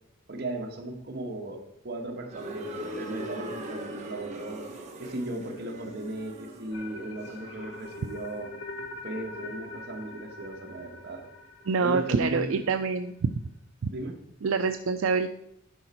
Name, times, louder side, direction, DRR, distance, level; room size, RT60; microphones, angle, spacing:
voice 1, 0.3-4.7 5.0-8.5 9.0-11.2 11.8-12.6 13.9-14.2, right 1 dB, 50° right, 2 dB, 1.4 m, -36 dB
sound 1, 2.3-8.2, right 1 dB, 35° right, 1.2 m, -41 dB
sound 2, 6.7-12.8, left 2 dB, 65° left, 1.1 m, -43 dB
voice 2, 11.7-13.3 13.8-13.9 14.4-15.3, right 5 dB, 75° right, 8 dB, 0.4 m, -26 dB
11.5 x 5.1 x 4.4 m, 0.77 s
head